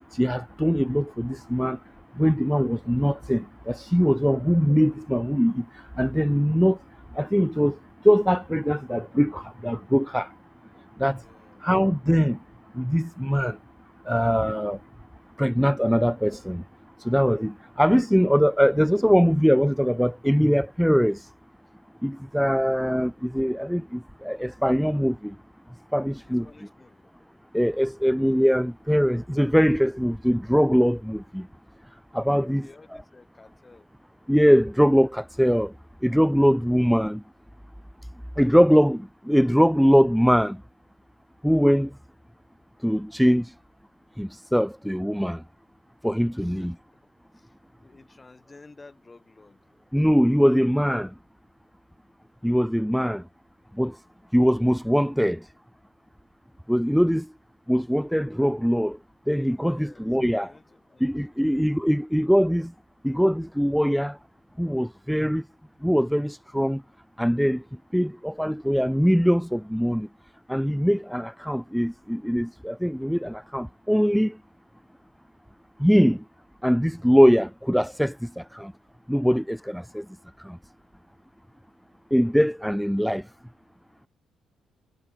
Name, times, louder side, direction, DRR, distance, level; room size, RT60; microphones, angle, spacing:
voice 1, 0.1-1.8 2.2-5.6 6.0-6.8 7.2-7.8 8.0-10.3 11.0-11.2 11.6-12.4 12.8-13.6 14.1-14.8 15.4-16.6 17.0-21.2 22.0-25.3 25.9-26.5 27.5-31.5 32.1-32.7 34.3-35.7 36.0-37.2 38.4-40.6 41.4-41.9 42.8-43.5 44.2-45.4 46.0-46.7 49.9-51.1 52.4-53.2 53.8-53.9 54.3-55.4 56.7-57.3 57.7-59.0 59.3-60.5 61.0-62.7 63.0-64.1 64.6-65.4 65.8-66.8 67.2-67.6 67.9-70.1 70.5-74.3 75.8-76.2 76.6-78.1 78.5-78.7 79.1-80.0 80.5-80.6 82.1-83.2, equal, ahead, 0.6 m, -22 dB
voice 2, 11.2-11.7 26.1-27.1 32.3-33.9 46.4-46.7 47.3-49.6 59.6-61.8 79.9-80.1, left 3 dB, 25° left, 4.7 m, -53 dB
cardioid pair, 90°, 0 cm